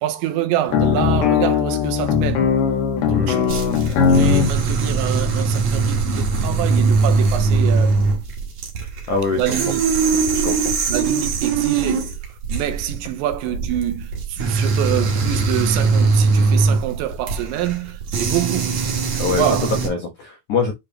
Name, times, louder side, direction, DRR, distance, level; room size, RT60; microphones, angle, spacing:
voice 1, 0.0-2.5 3.0-3.6 4.0-8.0 9.3-9.8 10.9-12.2 12.5-18.8 19.3-19.7, right 12 dB, 75° right, 2.9 m, -26 dB
sound 1, 0.7-4.5, left 6 dB, 65° left, 3.2 m, -18 dB
voice 2, 3.1-3.6 9.1-9.6 10.3-10.6 19.2-19.5 19.8-20.7, left 5 dB, 85° left, 1.7 m, -24 dB
sound 2, 3.5-19.9, right 4 dB, 60° right, 1.8 m, -21 dB
9.5 x 3.6 x 2.9 m
omnidirectional pair, 5.8 m